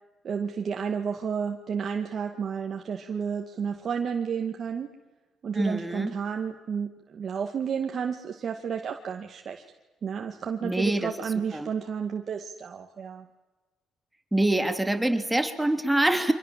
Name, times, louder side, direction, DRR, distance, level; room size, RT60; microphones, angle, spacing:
voice 1, 0.2-4.9 5.4-9.6 10.0-13.3, right 6 dB, 55° right, 3 dB, 2.1 m, -31 dB
voice 2, 5.5-6.2 10.6-11.1 11.5-11.7 14.3-16.3, right 1 dB, 10° right, 7 dB, 2.8 m, -25 dB
28.5 x 26.0 x 7.6 m, 1.2 s
cardioid pair, 90°, 0 cm